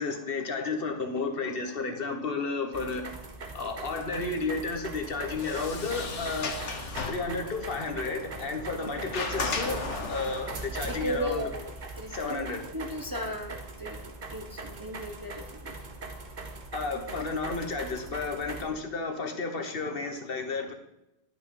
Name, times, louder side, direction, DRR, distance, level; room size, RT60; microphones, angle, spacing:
voice 1, 0.0-3.0 3.5-6.6 7.1-11.4 12.1-12.6 16.7-20.7, left 4 dB, 55° left, 5 dB, 1.3 m, -32 dB
sound 1, 2.7-18.7, right 3 dB, 45° right, 1.1 m, -41 dB
Sliding door, 5.0-10.6, left 4 dB, 85° left, 1.4 m, -36 dB
voice 2, 10.8-15.7, equal, 20° right, 3 dB, 0.8 m, -36 dB
11.0 x 5.4 x 5.5 m, 0.91 s
omnidirectional pair, 1.2 m